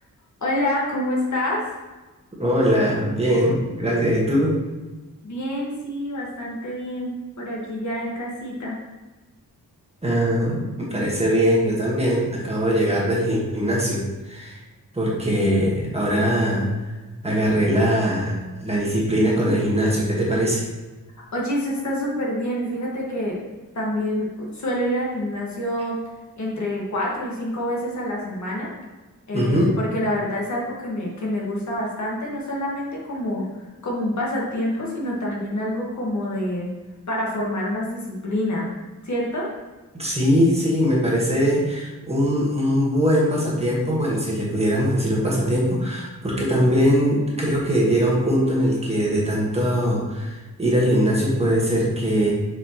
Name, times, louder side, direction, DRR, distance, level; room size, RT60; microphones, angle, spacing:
voice 1, 0.4-1.6 5.2-8.8 21.3-23.4 23.7-24.3 24.5-26.0 26.4-28.7 29.3-33.5 33.8-36.7 37.1-38.7 39.0-39.5, left 1 dB, 55° left, -3 dB, 1.5 m, -27 dB
voice 2, 2.4-4.5 10.0-14.6 14.9-16.7 17.2-18.3 18.6-20.6 29.3-29.7 40.0-52.3, equal, 20° right, -5 dB, 1.4 m, -21 dB
6.6 x 5.0 x 2.9 m, 1.2 s
wide cardioid pair, 170°, 34 cm